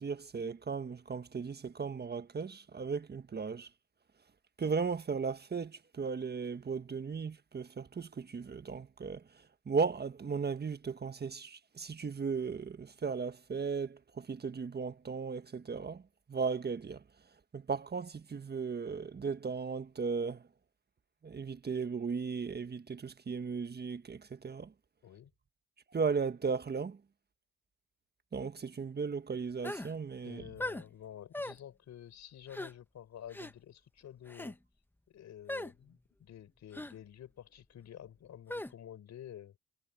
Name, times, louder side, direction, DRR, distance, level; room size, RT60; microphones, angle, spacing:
voice 1, 0.0-3.7 4.6-9.2 9.7-16.0 16.3-17.0 17.5-20.4 21.2-24.7 25.9-27.0 28.3-30.4, right 5 dB, 30° right, 1.5 m, -36 dB
sound 1, 29.6-29.9 30.6-30.8 31.3-31.6 32.5-32.7 33.3-33.5 34.3-34.5 35.5-35.7 36.7-36.9 38.5-38.7, left 1 dB, 5° left, 1.1 m, -39 dB
voice 2, 30.2-34.6 35.1-39.6, left 10 dB, 60° left, 4.3 m, -50 dB
supercardioid pair, 75°, 31 cm